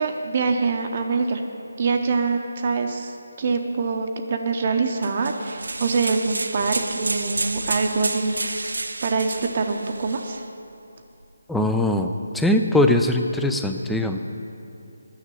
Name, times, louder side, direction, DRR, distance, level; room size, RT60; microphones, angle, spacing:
voice 1, 0.0-1.4 1.8-3.1 3.4-8.7 9.0-10.4, right 4 dB, 40° right, 4 dB, 0.7 m, -24 dB
sound 1, 5.0-10.4, right 2 dB, 85° right, 0.7 m, -30 dB
voice 2, 11.5-12.1 12.3-14.2, left 1 dB, 5° left, 5 dB, 0.4 m, -21 dB
9.6 x 6.6 x 8.4 m, 2.7 s
figure-of-eight pair, 165°, 0 cm